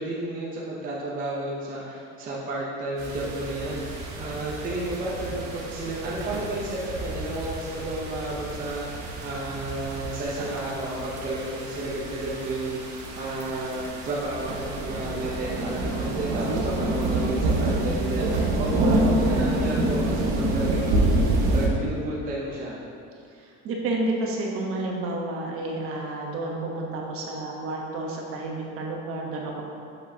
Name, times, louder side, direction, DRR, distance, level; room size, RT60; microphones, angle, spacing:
voice 1, 0.0-3.8 4.2-21.1 21.5-22.8, right 1 dB, 25° right, -5 dB, 0.7 m, -32 dB
sound 1, 3.0-21.7, right 2 dB, 65° right, 1.3 m, -27 dB
voice 2, 23.3-29.6, right 2 dB, 45° right, -1 dB, 1.1 m, -30 dB
7.7 x 6.2 x 2.8 m, 2.5 s
cardioid pair, 160°, 31 cm